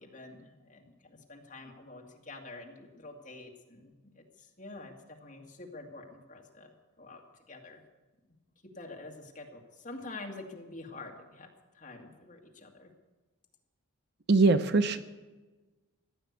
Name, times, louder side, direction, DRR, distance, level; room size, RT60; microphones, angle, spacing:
voice 1, 0.0-4.2 4.6-4.9 5.2-6.7 7.0-7.2 7.5-7.8 8.8-11.5 11.8-12.9, left 2 dB, 35° left, 0 dB, 2.2 m, -47 dB
voice 2, 14.3-15.0, right 3 dB, 50° right, 10 dB, 0.7 m, -22 dB
15.5 x 10.0 x 8.2 m, 1.2 s
head